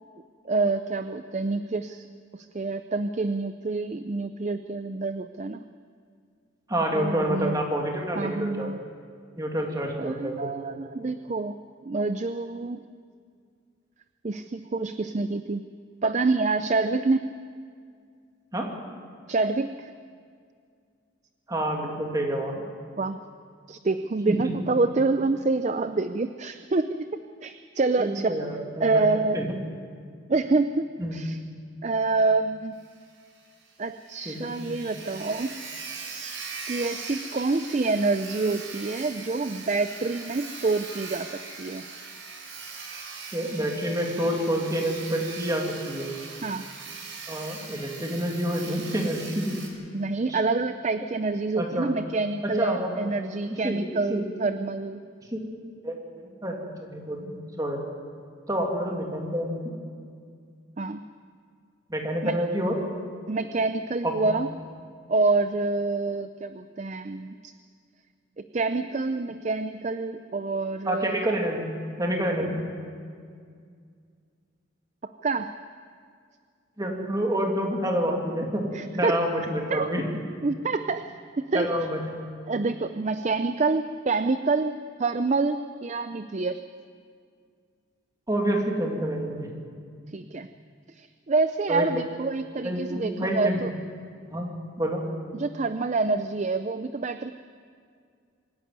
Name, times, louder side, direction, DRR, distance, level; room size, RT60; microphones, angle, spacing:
voice 1, 0.4-2.1 2.3-5.6 6.9-7.6 8.2-8.8 10.0-12.8 14.2-15.6 16.0-17.3 19.3-19.9 23.0-23.2 23.7-27.1 27.4-28.3 28.8-29.4 30.3-31.4 31.8-32.8 33.8-35.5 36.7-41.8 46.4-46.6 49.9-55.0 60.8-61.0 62.2-62.4 63.3-64.5 65.1-67.5 68.4-71.3 75.0-75.5 78.7-79.2 79.7-79.9 80.4-81.1 81.4-81.7 82.5-86.6 90.1-90.5 90.9-93.7 95.3-97.3, right 3 dB, 35° right, 10 dB, 0.4 m, -27 dB
voice 2, 6.7-8.7 9.4-10.5 18.5-18.7 21.5-22.6 24.3-24.5 28.0-29.0 29.3-29.4 31.0-31.2 34.3-34.5 43.3-46.1 47.3-49.6 50.3-50.4 51.6-51.9 52.6-53.1 53.5-53.8 54.1-54.2 55.3-55.4 55.8-57.8 58.5-59.7 61.9-62.8 64.0-64.3 70.8-71.7 72.0-72.6 76.8-78.6 78.9-80.0 81.5-82.0 88.3-89.5 91.7-91.9 92.6-93.6 94.3-94.5 94.8-95.0, equal, 20° right, 0 dB, 2.6 m, -28 dB
Sawing, 32.8-32.9 33.2-33.3 33.7-33.8 34.0-49.7, right 4 dB, 70° right, 4.1 m, -40 dB
24.5 x 11.0 x 9.7 m, 2.2 s
head